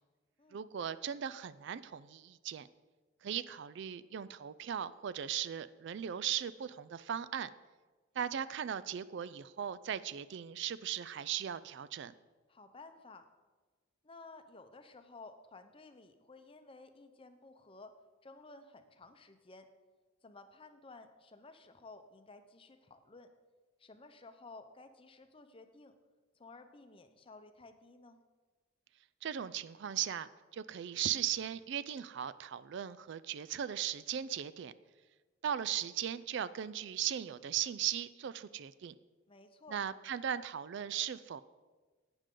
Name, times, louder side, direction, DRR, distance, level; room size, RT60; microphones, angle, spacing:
voice 1, 0.5-2.7 3.2-7.5 8.2-12.1 29.2-34.7 35.4-38.9 39.7-41.4, right 9 dB, 60° right, 15 dB, 0.4 m, -38 dB
voice 2, 12.5-13.3 14.0-17.9 18.2-19.7 20.2-23.3 23.8-25.9 26.4-28.2 39.3-39.8, left 3 dB, 25° left, 8 dB, 0.7 m, -54 dB
11.5 x 9.0 x 3.8 m, 1.3 s
head